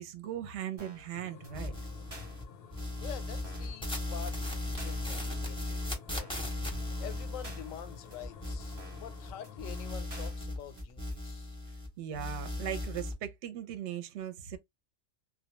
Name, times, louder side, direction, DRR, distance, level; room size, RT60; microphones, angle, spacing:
voice 1, 0.0-1.7 12.0-14.6, right 10 dB, 65° right, 0.9 m, -38 dB
sound 1, 0.8-1.1 1.4-1.5 1.8-1.9 2.1-2.4 2.8-2.9 3.1-3.2 3.4-3.8 4.1-4.2 4.4-4.5 4.8-5.1 5.4-5.5 5.8-5.9 6.1-6.4 6.8-6.9 7.1-7.2 7.4-7.8 8.1-8.2 8.4-8.5 8.8-9.1 9.4-9.5 9.8-9.9 10.1-10.4 10.8-10.9 11.1-11.2, right 1 dB, 30° right, 0.9 m, -50 dB
sound 2, 1.1-9.9, left 6 dB, 60° left, 0.7 m, -51 dB
sound 3, 1.5-2.4 2.7-9.3 9.6-11.9 12.1-13.1, left 2 dB, 5° left, 0.5 m, -37 dB
voice 2, 3.0-6.3 7.0-11.5, left 10 dB, 85° left, 1.0 m, -46 dB
2.2 x 2.1 x 2.9 m
omnidirectional pair, 1.3 m